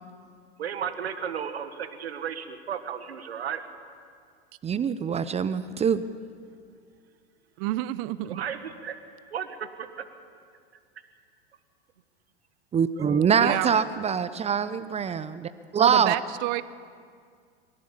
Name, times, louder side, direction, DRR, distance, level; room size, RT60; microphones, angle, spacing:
voice 1, 0.6-3.6 8.3-9.0 9.3-10.1 13.0-13.4 13.7-13.8, right 8 dB, 80° right, 1.8 m, -34 dB
voice 2, 4.6-6.0 12.7-16.1, right 7 dB, 20° right, 0.7 m, -24 dB
voice 3, 7.6-8.4 13.4-13.7 15.8-16.6, right 16 dB, 50° right, 0.9 m, -29 dB
23.5 x 16.0 x 7.2 m
hypercardioid pair, 95°, 31 cm